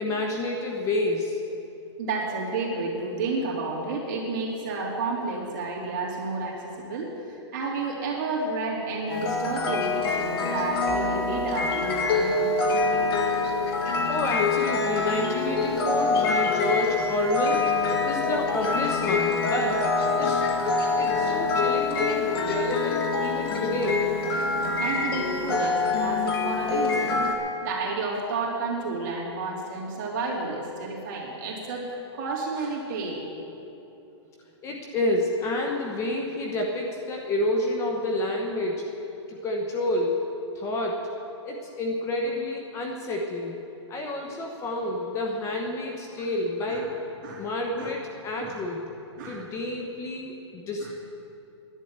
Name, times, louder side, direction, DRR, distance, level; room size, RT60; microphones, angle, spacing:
voice 1, 0.0-1.4 14.1-17.6 18.0-19.8 20.2-20.4 21.0-24.1 34.6-38.8 39.3-40.2 40.5-41.0 41.4-43.6 43.9-46.9 47.4-48.8 49.2-50.9, left 1 dB, 20° left, 1 dB, 1.0 m, -29 dB
voice 2, 2.0-12.8 24.5-27.2 27.6-33.2 46.2-46.3 46.7-46.9 47.2-47.5 47.8-47.9 48.4-48.6 49.2-49.5 50.8-50.9, right 3 dB, 40° right, -3 dB, 3.1 m, -31 dB
sound 1, 9.1-27.3, left 4 dB, 55° left, 1.8 m, -25 dB
11.0 x 9.4 x 8.7 m, 2.9 s
hypercardioid pair, 155°, 15 cm